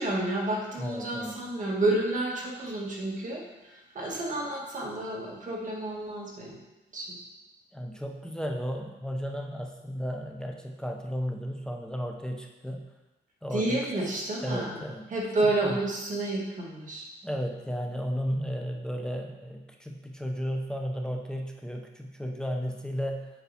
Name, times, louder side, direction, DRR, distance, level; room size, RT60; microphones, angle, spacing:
voice 1, 0.0-6.6 6.9-7.2 13.5-14.8 15.1-17.0, right 2 dB, 45° right, -3 dB, 1.9 m, -30 dB
voice 2, 0.8-1.4 7.7-12.9 13.4-13.8 14.4-15.1 15.6-15.8 17.2-23.3, equal, 5° left, 2 dB, 0.7 m, -34 dB
7.1 x 4.6 x 4.2 m, 1.0 s
cardioid pair, 115°, 18 cm